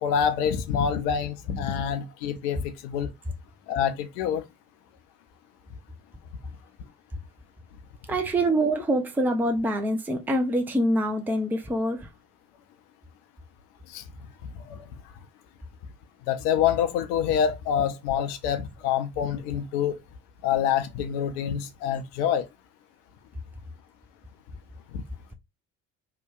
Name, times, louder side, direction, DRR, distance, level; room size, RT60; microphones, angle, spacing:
voice 1, 0.0-3.1 3.7-4.4 13.9-14.0 14.7-14.8 16.3-20.0 20.4-22.4 24.9-25.0, left 8 dB, 75° left, 0.6 m, -26 dB
voice 2, 8.1-12.1 17.7-17.8, right 1 dB, 5° right, 0.5 m, -25 dB
2.7 x 2.2 x 2.3 m
figure-of-eight pair, 50°, 48 cm